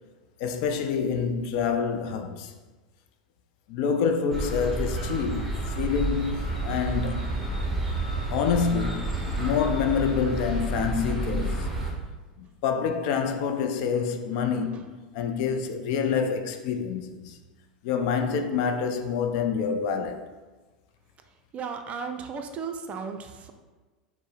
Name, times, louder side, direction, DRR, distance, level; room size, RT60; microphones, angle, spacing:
voice 1, 0.4-2.5 3.7-7.2 8.3-11.7 12.4-17.4 17.8-20.3, left 6 dB, 50° left, 0.4 m, -27 dB
sound 1, 4.3-11.9, right 2 dB, 5° right, 1.1 m, -30 dB
voice 2, 21.5-23.5, right 5 dB, 30° right, 0.4 m, -35 dB
4.4 x 2.1 x 4.6 m
figure-of-eight pair, 80°, 4 cm